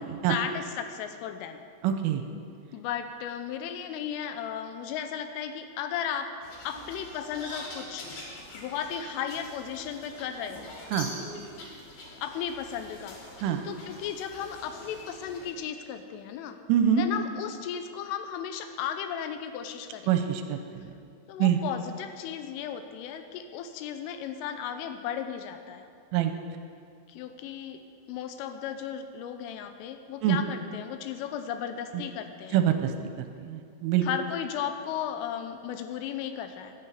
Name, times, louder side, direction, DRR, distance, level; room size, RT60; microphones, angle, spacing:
voice 1, 0.1-1.6 2.7-6.3 6.6-8.1 8.5-10.7 12.2-13.2 13.6-16.6 17.0-20.3 21.3-25.9 27.1-27.8 28.1-32.6 34.0-36.7, left 8 dB, 85° left, 8 dB, 3.2 m, -35 dB
voice 2, 1.8-2.2 10.9-11.1 13.4-13.6 16.7-17.0 20.1-20.8 21.4-21.6 26.1-26.3 30.2-30.4 32.5-32.9 33.2-34.0, right 10 dB, 85° right, 7 dB, 3.1 m, -25 dB
sound 1, 6.4-15.5, left 2 dB, 55° left, 3.9 m, -44 dB
11.5 x 9.9 x 8.2 m, 2.3 s
omnidirectional pair, 5.9 m